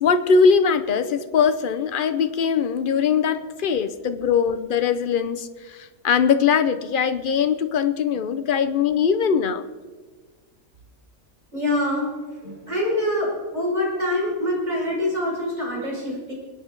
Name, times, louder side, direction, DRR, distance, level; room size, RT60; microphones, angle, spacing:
voice 1, 0.0-9.6, left 6 dB, 70° left, 10 dB, 0.5 m, -21 dB
voice 2, 11.5-12.1 12.4-16.3, left 1 dB, 25° right, -5 dB, 5.7 m, -25 dB
27.0 x 9.4 x 3.9 m, 1.4 s
omnidirectional pair, 1.7 m